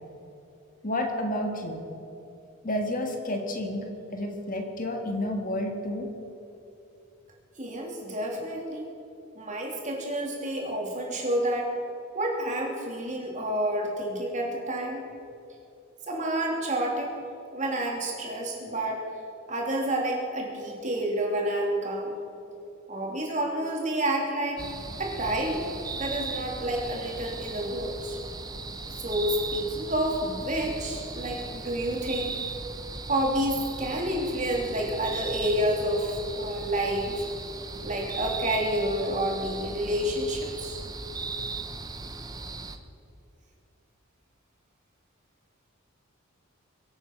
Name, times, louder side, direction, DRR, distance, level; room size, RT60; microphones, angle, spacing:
voice 1, 0.8-1.8 2.6-6.1, left 1 dB, 40° left, 3 dB, 1.6 m, -30 dB
voice 2, 7.6-8.9 9.3-11.8 12.1-15.0 16.1-17.1 17.5-19.0 19.5-22.2 22.9-24.6 25.0-25.7 25.9-28.2 28.9-32.4 33.1-37.2 37.8-40.8, right 1 dB, 35° right, -1 dB, 3.1 m, -29 dB
sound 1, 24.6-42.8, right 3 dB, 20° right, 0.8 m, -37 dB
23.5 x 8.9 x 6.1 m, 2.8 s
head